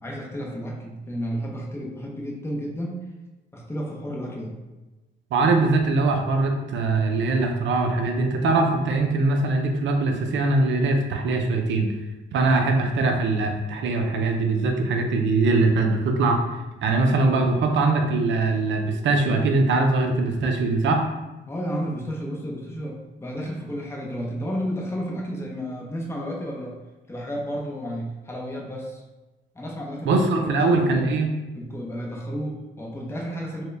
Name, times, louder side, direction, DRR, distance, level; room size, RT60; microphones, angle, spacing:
voice 1, 0.0-3.0 3.5-4.6 21.5-26.8 27.1-29.0 29.5-31.1 31.6-33.6, equal, 15° left, -2 dB, 0.8 m, -32 dB
voice 2, 5.3-11.9 12.3-21.0 30.0-31.3, right 3 dB, 70° right, 3 dB, 0.6 m, -22 dB
4.5 x 2.2 x 3.3 m, 1.1 s
cardioid pair, 90°, 20 cm